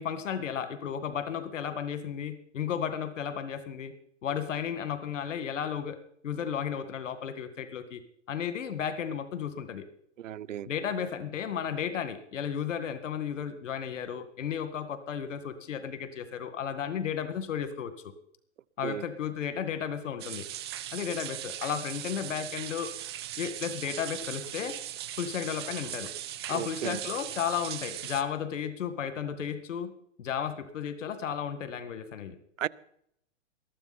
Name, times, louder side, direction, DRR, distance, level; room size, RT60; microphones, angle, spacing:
voice 1, 0.0-3.9 4.2-6.0 6.2-8.0 8.3-9.8 10.7-18.1 18.8-20.5 20.9-22.9 23.4-24.8 25.2-26.1 26.5-29.9 30.2-32.4, left 8 dB, 80° left, 10 dB, 2.1 m, -34 dB
voice 2, 10.2-10.7 18.8-19.0 26.5-27.0 32.6-32.7, right 11 dB, 90° right, 21 dB, 0.9 m, -34 dB
sound 1, 20.2-28.2, right 12 dB, 20° right, 0.6 m, -39 dB
20.5 x 14.0 x 4.3 m, 0.69 s
hypercardioid pair, 170°, 37 cm